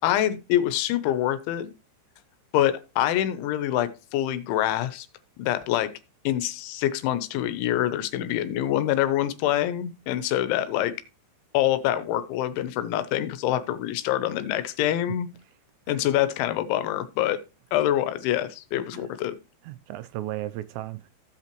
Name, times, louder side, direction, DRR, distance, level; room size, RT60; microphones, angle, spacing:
voice 1, 0.0-1.7 2.5-5.1 5.4-5.9 6.2-10.9 11.5-15.3 15.9-17.4 17.7-19.4, left 12 dB, 85° left, 3.2 m, -25 dB
voice 2, 19.6-21.2, right 15 dB, 85° right, 2.6 m, -36 dB
16.0 x 5.8 x 3.0 m
omnidirectional pair, 5.3 m